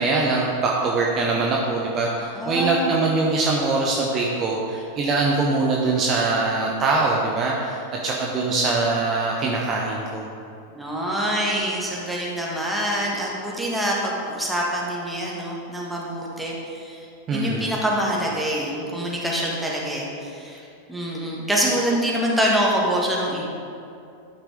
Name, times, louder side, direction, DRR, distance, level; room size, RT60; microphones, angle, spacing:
voice 1, 0.0-10.2 17.3-17.7, right 3 dB, 30° right, -2 dB, 0.9 m, -23 dB
voice 2, 2.3-2.9 10.7-17.1 17.3-20.6 20.9-23.4, equal, 5° right, -4 dB, 1.6 m, -25 dB
12.0 x 5.9 x 3.8 m, 2.6 s
figure-of-eight pair, 90°, 0 cm